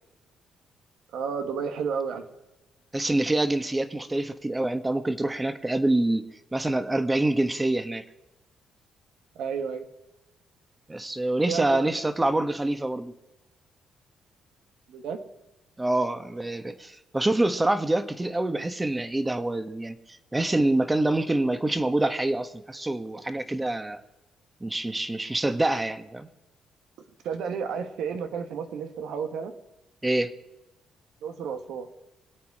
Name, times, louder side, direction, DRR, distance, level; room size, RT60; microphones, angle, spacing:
voice 1, 1.1-2.3 9.4-9.9 11.5-11.9 14.9-15.2 27.0-29.5 31.2-31.9, right 6 dB, 80° right, 7 dB, 1.5 m, -32 dB
voice 2, 2.9-8.0 10.9-13.1 15.8-19.9 20.3-24.0 24.6-26.3 30.0-30.3, right 2 dB, 15° right, 10 dB, 1.4 m, -26 dB
25.0 x 8.6 x 4.9 m, 0.95 s
cardioid pair, 90°, 0 cm